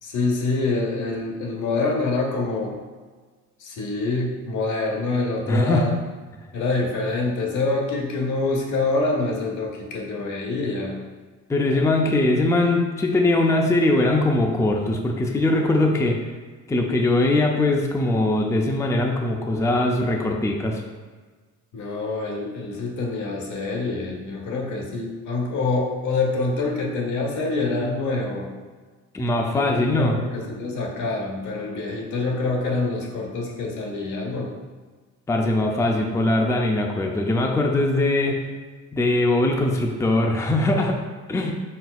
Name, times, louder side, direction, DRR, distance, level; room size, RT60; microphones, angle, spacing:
voice 1, 0.0-2.8 3.6-6.0 6.5-11.0 21.7-28.5 29.5-34.5, left 3 dB, 75° left, 0 dB, 0.9 m, -26 dB
voice 2, 5.5-5.9 11.5-16.2 16.7-20.8 29.1-30.2 35.3-38.4 38.9-41.0 41.3-41.5, left 2 dB, 10° left, 1 dB, 0.4 m, -21 dB
4.2 x 4.0 x 2.3 m, 1.4 s
cardioid pair, 90°, 30 cm